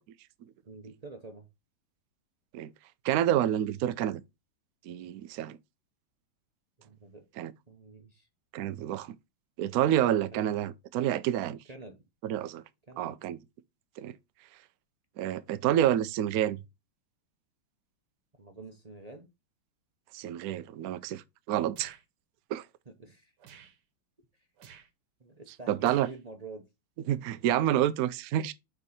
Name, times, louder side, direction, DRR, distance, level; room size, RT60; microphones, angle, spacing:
voice 1, 0.7-1.5 6.8-7.3 7.7-8.3 10.3-10.5 11.7-12.0 12.9-13.2 18.4-19.3 23.0-23.3 25.2-26.7, right 3 dB, 45° right, 0.5 m, -47 dB
voice 2, 3.0-4.2 4.9-5.6 7.4-7.5 8.5-9.1 9.6-11.6 12.2-12.6 13.0-13.4 14.0-14.2 15.2-16.6 20.1-21.2 21.5-22.0 22.5-22.6 25.7-26.1 27.1-28.5, right 11 dB, 85° right, 0.8 m, -28 dB
sound 1, 21.8-22.0 23.4-23.8 24.6-24.9 25.8-26.2, right 8 dB, 65° right, 1.5 m, -52 dB
5.4 x 4.7 x 4.1 m
omnidirectional pair, 2.2 m